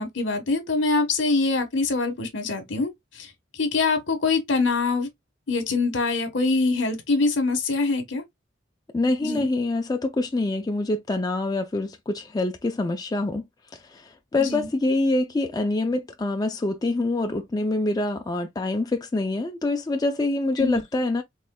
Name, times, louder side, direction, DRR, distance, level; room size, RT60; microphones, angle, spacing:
voice 1, 0.0-5.1 5.5-8.2 9.2-9.5 14.4-14.7 20.6-20.8, left 3 dB, 70° left, 1.2 m, -24 dB
voice 2, 8.9-13.5 13.7-21.2, left 2 dB, 20° left, 0.4 m, -25 dB
4.3 x 3.2 x 2.2 m
head